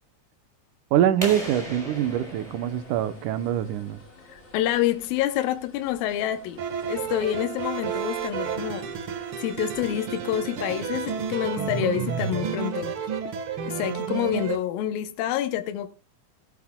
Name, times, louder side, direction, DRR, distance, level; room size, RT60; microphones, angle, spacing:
voice 1, 0.9-4.0, right 11 dB, 75° right, 2.1 m, -24 dB
sound 1, 1.2-3.9, equal, 10° right, 4.0 m, -37 dB
sound 2, 1.9-11.3, left 1 dB, 20° left, 3.0 m, -51 dB
voice 2, 4.3-6.6 6.9-8.9 9.4-12.9 13.7-15.9, left 12 dB, 80° left, 2.5 m, -27 dB
sound 3, 6.6-14.6, right 7 dB, 55° right, 1.5 m, -31 dB
19.0 x 12.0 x 2.2 m
omnidirectional pair, 4.1 m